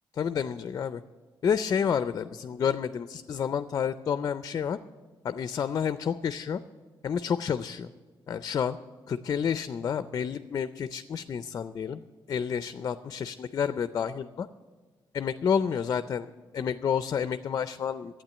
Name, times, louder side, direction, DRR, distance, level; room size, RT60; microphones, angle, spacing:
voice 1, 0.1-1.0 1.4-4.8 5.2-6.6 7.0-7.9 8.3-8.8 9.1-12.0 12.3-14.5 15.1-16.3 16.5-18.2, left 7 dB, 40° left, 12 dB, 0.4 m, -29 dB
12.0 x 8.8 x 9.5 m, 1.4 s
wide cardioid pair, 160°, 8 cm